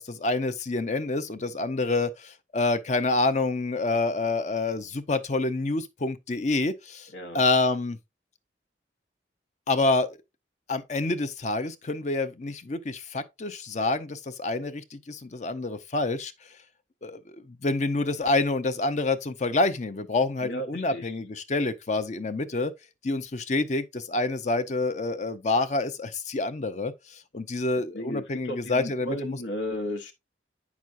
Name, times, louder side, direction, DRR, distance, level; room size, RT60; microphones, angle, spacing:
voice 1, 0.0-7.1 7.3-8.0 9.7-10.2 10.7-16.3 17.0-22.7 23.0-29.4, left 2 dB, 40° left, 0.6 m, -27 dB
voice 2, 7.1-7.4 20.4-21.1 27.9-30.1, equal, 85° left, 1.0 m, -34 dB
8.4 x 6.0 x 2.5 m
head